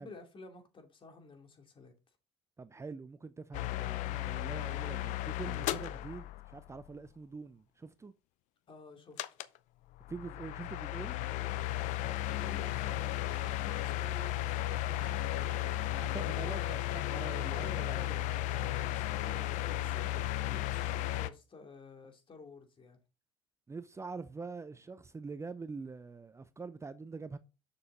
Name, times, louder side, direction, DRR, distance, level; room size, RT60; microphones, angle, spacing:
voice 1, 0.0-2.2 8.7-9.4 11.9-15.3 17.5-23.0, left 3 dB, 40° left, 2.6 m, -52 dB
voice 2, 2.6-8.1 10.1-11.2 15.9-18.0 23.7-27.4, right 4 dB, 20° right, 0.6 m, -44 dB
sound 1, 3.5-6.9 9.2-9.6 10.0-21.3, left 14 dB, 65° left, 0.6 m, -35 dB
7.1 x 6.7 x 3.8 m
hypercardioid pair, 65°, 13 cm